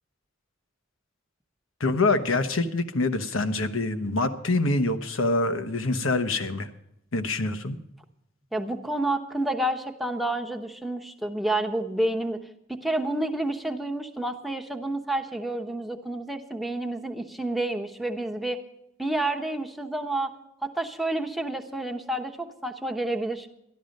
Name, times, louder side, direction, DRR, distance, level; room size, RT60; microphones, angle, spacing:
voice 1, 1.8-6.7 7.1-7.8, left 2 dB, 80° left, 9 dB, 1.1 m, -25 dB
voice 2, 8.5-12.4 12.7-18.6 19.0-20.3 20.6-23.5, right 1 dB, ahead, 3 dB, 1.0 m, -29 dB
13.0 x 12.0 x 5.2 m, 0.82 s
head